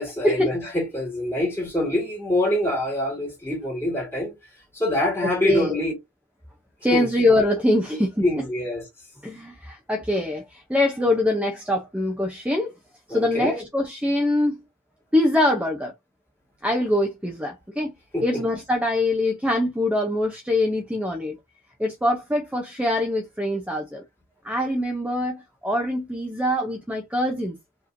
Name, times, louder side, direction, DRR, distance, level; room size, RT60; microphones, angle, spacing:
voice 1, 0.0-4.3 4.7-5.9 6.9-7.1 8.2-8.8 13.1-13.6 18.1-18.2, left 1 dB, 10° left, 2.3 m, -25 dB
voice 2, 5.4-5.8 6.8-8.4 9.2-12.7 13.1-14.6 15.1-15.9 16.6-17.9 18.2-21.4 21.8-24.0 24.4-27.6, left 1 dB, 5° right, 0.6 m, -23 dB
4.8 x 3.0 x 2.6 m
head